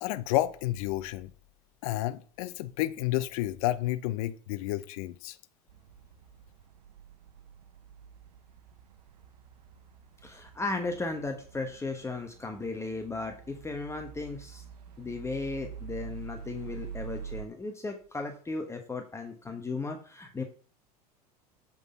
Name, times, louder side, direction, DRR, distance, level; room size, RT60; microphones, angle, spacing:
voice 1, 0.0-1.3 1.8-5.4, left 15 dB, 60° left, 0.6 m, -30 dB
sound 1, 5.7-17.4, right 7 dB, 80° right, 0.9 m, -46 dB
voice 2, 10.2-14.6 15.0-20.4, left 3 dB, 15° left, 1.0 m, -36 dB
8.1 x 4.0 x 5.4 m
hypercardioid pair, 80°, 20 cm